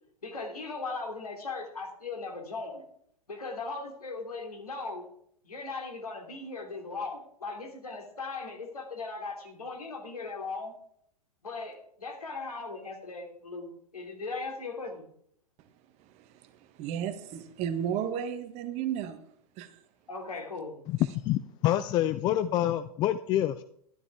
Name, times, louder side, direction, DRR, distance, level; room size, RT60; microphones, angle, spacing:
voice 1, 0.2-2.8 3.3-5.1 5.4-10.7 11.4-15.1 20.1-20.8, left 3 dB, 75° left, 2.9 m, -38 dB
voice 2, 16.8-19.2 19.6-19.7, right 9 dB, 35° right, 1.3 m, -33 dB
voice 3, 20.9-23.6, left 13 dB, 25° left, 0.4 m, -27 dB
12.5 x 11.5 x 3.6 m
figure-of-eight pair, 100°, 19 cm